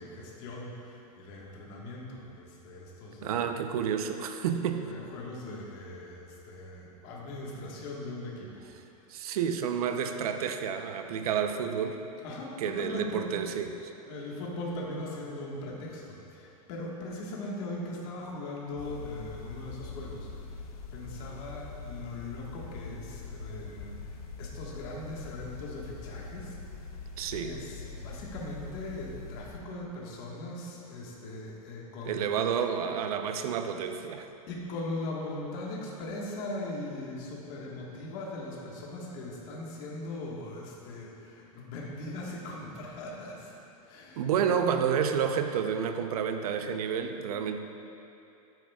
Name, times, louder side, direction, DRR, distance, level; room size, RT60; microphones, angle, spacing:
voice 1, 0.0-3.5 4.8-9.0 12.2-13.5 14.1-26.9 27.4-32.4 34.5-43.5 43.8-44.4, left 2 dB, 40° left, -3 dB, 1.5 m, -40 dB
voice 2, 3.2-4.8 9.1-12.0 12.6-13.7 27.2-27.5 32.0-34.3 44.2-47.6, right 7 dB, 75° right, 7 dB, 0.7 m, -30 dB
sound 1, 18.8-29.6, left 4 dB, 75° left, 0.8 m, -43 dB
12.5 x 9.2 x 2.3 m, 2.8 s
supercardioid pair, 170°, 19 cm